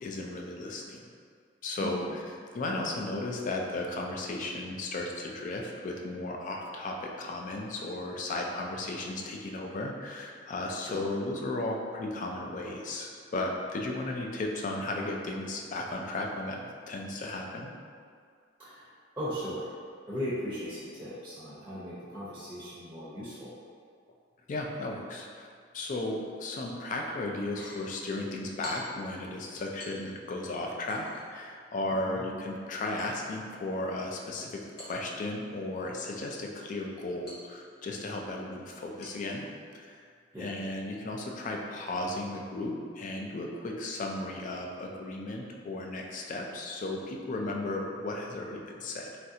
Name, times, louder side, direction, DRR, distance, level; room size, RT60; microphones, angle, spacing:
voice 1, 0.0-1.0 1.6-2.2 2.5-17.7 24.5-25.5 25.7-39.5 39.7-40.0 40.4-49.1, left 2 dB, 45° left, 0 dB, 0.3 m, -35 dB
voice 2, 1.8-2.1 10.9-11.0 18.6-18.9 19.2-19.7 20.1-23.5 32.0-32.2 40.3-40.5, equal, 15° right, -10 dB, 0.6 m, -37 dB
sound 1, 27.4-27.9 28.6-29.1 29.8-30.4 30.9-31.4 33.0-34.0 34.8-35.6 37.3-38.0 39.0-39.4 39.8-40.0, equal, 60° left, 0.8 m, -49 dB
3.1 x 2.5 x 2.7 m, 2.1 s
head